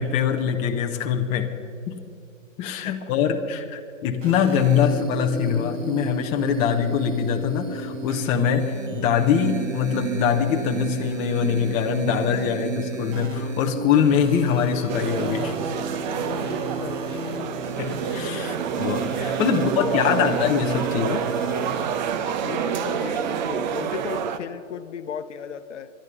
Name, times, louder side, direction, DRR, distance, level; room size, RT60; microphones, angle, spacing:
voice 1, 0.0-1.6 1.9-2.0 2.6-15.6 17.8-21.3, left 8 dB, 20° left, 4 dB, 0.7 m, -23 dB
sound 1, 4.2-21.8, right 4 dB, 75° right, 2.2 m, -32 dB
sound 2, 14.9-24.4, right 7 dB, 35° right, 0.8 m, -28 dB
voice 2, 16.8-17.2 19.5-20.4 22.4-25.9, left 8 dB, 65° left, 12 dB, 0.9 m, -35 dB
20.5 x 11.5 x 5.5 m, 2.5 s
hypercardioid pair, 130°, 39 cm